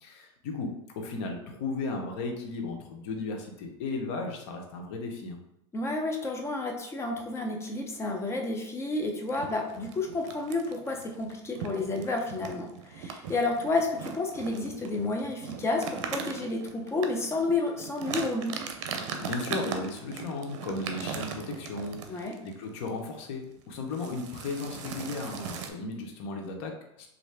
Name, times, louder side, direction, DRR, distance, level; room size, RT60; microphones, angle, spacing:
voice 1, 0.0-5.4 19.2-27.1, left 3 dB, 65° left, 3 dB, 0.8 m, -35 dB
voice 2, 5.7-18.6 22.1-22.3, left 2 dB, 15° left, 2 dB, 0.6 m, -31 dB
sound 1, 9.3-22.5 22.9-23.1 23.3-23.6 23.9-25.7, right 6 dB, 75° right, 0.5 m, -39 dB
3.2 x 2.6 x 3.3 m, 0.82 s
supercardioid pair, 120°, 16 cm